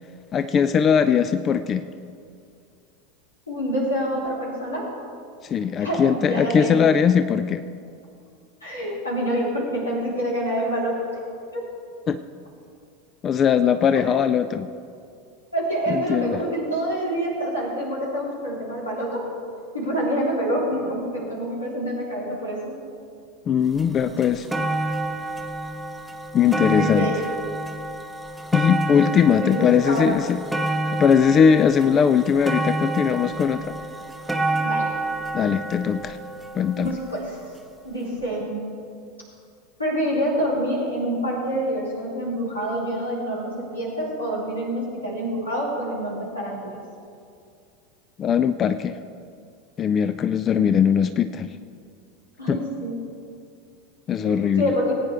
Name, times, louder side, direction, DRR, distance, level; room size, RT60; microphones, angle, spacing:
voice 1, 0.3-1.9 5.4-7.6 12.1-12.2 13.2-14.7 15.9-16.4 23.5-24.5 26.3-27.1 28.5-30.4 30.9-33.7 35.3-36.2 36.5-37.0 48.2-49.0 49.8-51.5 52.5-52.6 54.1-54.7, left 7 dB, 30° left, 11 dB, 0.4 m, -20 dB
voice 2, 3.5-4.9 5.8-6.9 8.6-11.1 11.5-11.6 13.9-14.0 15.5-19.3 19.7-22.8 24.1-24.2 26.7-27.2 29.0-30.1 34.5-34.9 36.8-37.4 37.8-38.7 39.8-46.8 50.5-50.6 52.4-53.0 54.2-54.9, equal, 85° left, -5 dB, 3.6 m, -27 dB
sound 1, 23.8-23.9 24.2-37.4 38.2-38.3, right 2 dB, 5° right, 0.8 m, -28 dB
19.0 x 9.3 x 3.4 m, 2.4 s
figure-of-eight pair, 80°, 0 cm